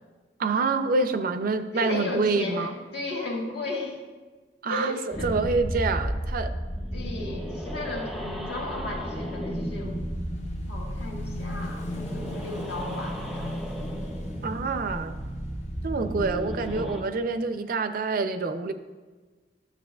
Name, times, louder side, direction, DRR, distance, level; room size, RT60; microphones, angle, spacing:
voice 1, 0.4-2.7 4.6-6.5 14.4-15.1 15.8-18.7, right 4 dB, 50° right, 9 dB, 0.4 m, -27 dB
voice 2, 1.7-4.0 4.7-5.3 6.9-10.0 10.7-13.6, left 2 dB, 65° left, -2 dB, 1.7 m, -34 dB
sound 1, 5.1-17.0, equal, ahead, 0.6 m, -33 dB
Motorcycle / Engine, 8.8-17.3, equal, 40° left, 0.7 m, -39 dB
12.0 x 6.8 x 2.3 m, 1.3 s
head